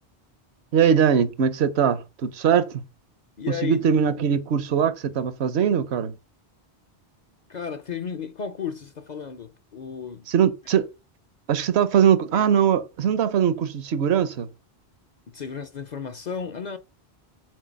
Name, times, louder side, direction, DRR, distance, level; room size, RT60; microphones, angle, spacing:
voice 1, 0.7-2.8 3.6-6.1 10.3-10.9 11.5-14.5, right 8 dB, 75° right, 0.9 m, -21 dB
voice 2, 3.4-3.8 7.5-10.2 15.3-16.8, left 7 dB, 50° left, 0.6 m, -33 dB
6.5 x 3.9 x 5.1 m
omnidirectional pair, 1.1 m